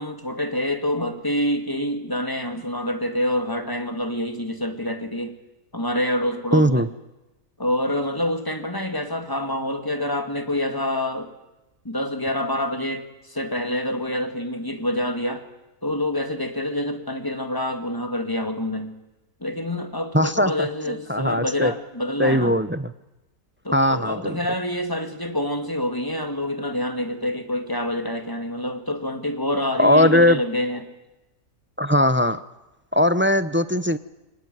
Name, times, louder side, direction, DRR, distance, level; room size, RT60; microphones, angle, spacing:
voice 1, 0.0-5.3 5.7-6.9 7.6-11.3 11.8-15.4 15.8-18.9 19.4-22.6 23.6-30.8, left 1 dB, 15° left, 7 dB, 2.3 m, -27 dB
voice 2, 6.5-6.9 20.1-21.7 22.2-22.9 23.7-24.4 29.8-30.4 31.8-32.4 32.9-34.0, left 1 dB, 15° right, 14 dB, 0.4 m, -19 dB
24.0 x 19.5 x 9.3 m, 1.0 s
omnidirectional pair, 1.5 m